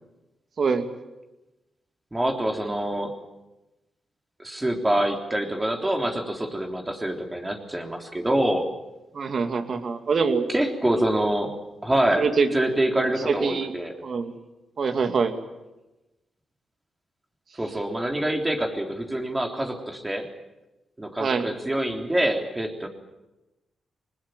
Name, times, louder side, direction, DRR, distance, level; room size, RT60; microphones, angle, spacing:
voice 1, 2.1-3.2 4.4-8.6 10.5-11.5 11.8-12.3 12.5-13.9 17.6-20.3 21.0-22.9, right 1 dB, 15° right, 3 dB, 3.5 m, -25 dB
voice 2, 9.1-10.5 12.2-12.5 13.0-13.7 14.0-14.3 14.8-15.3 21.2-21.5, right 5 dB, 55° right, 7 dB, 2.6 m, -24 dB
21.5 x 20.0 x 9.3 m, 1.0 s
cardioid pair, 75°, 0 cm